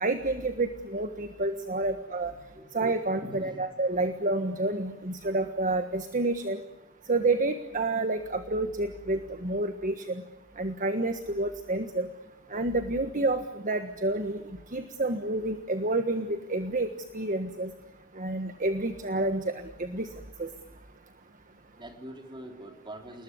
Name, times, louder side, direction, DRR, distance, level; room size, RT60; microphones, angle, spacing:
voice 1, 0.0-2.3 2.7-6.6 7.1-10.2 10.6-12.1 12.5-14.4 14.7-16.9 17.1-17.7 18.2-20.1 20.4-20.5, right 2 dB, 35° right, 8 dB, 1.4 m, -29 dB
voice 2, 2.3-2.7 3.2-3.6 21.8-23.2, right 1 dB, 20° right, 4 dB, 3.6 m, -44 dB
29.0 x 20.0 x 9.6 m, 1.0 s
head